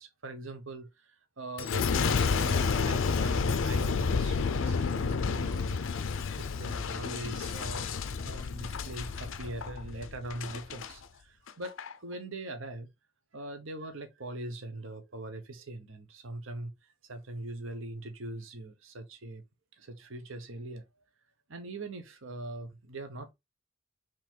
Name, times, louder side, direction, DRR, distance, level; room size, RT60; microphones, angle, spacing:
voice 1, 0.0-5.8 6.1-7.9 8.2-12.9 13.3-19.4 19.7-20.8 21.5-23.3, right 2 dB, 75° right, 1.0 m, -42 dB
Boom, 1.6-10.9 11.5-11.9, left 5 dB, 75° left, 0.5 m, -30 dB
3.8 x 3.0 x 4.6 m
head